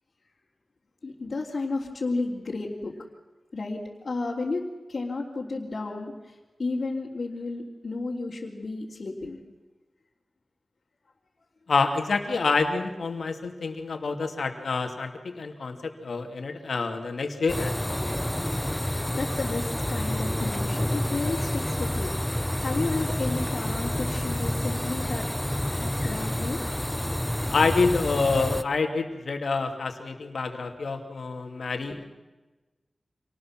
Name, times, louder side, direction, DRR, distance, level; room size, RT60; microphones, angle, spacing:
voice 1, 1.0-2.9 3.5-4.6 4.9-6.3 6.6-9.4 18.8-22.1 22.6-25.3 25.7-26.6 31.9-32.0, left 3 dB, 60° left, -5 dB, 3.4 m, -32 dB
voice 2, 11.7-17.9 27.5-32.0, left 4 dB, 85° left, 5 dB, 2.7 m, -27 dB
sound 1, 17.5-28.6, left 1 dB, 10° left, 0.8 m, -29 dB
26.5 x 19.5 x 6.1 m, 1.2 s
wide cardioid pair, 90°, 0 cm